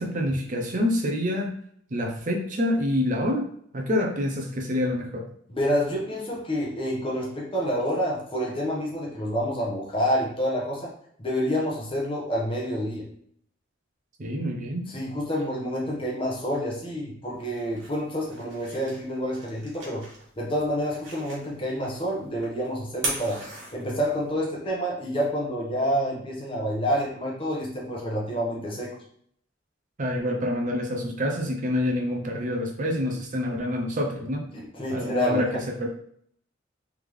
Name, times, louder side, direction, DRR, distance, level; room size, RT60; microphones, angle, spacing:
voice 1, 0.0-1.5 1.9-3.5 3.7-5.3 14.2-14.9 30.0-34.6 34.9-35.9, left 1 dB, 40° right, 1 dB, 0.6 m, -27 dB
voice 2, 5.5-10.9 11.2-13.1 14.9-20.0 20.4-23.4 23.7-29.0 34.5-35.4, equal, 30° left, -3 dB, 1.1 m, -28 dB
sound 1, 17.3-24.3, right 2 dB, 65° right, 1.5 m, -39 dB
3.5 x 3.5 x 3.1 m, 0.65 s
head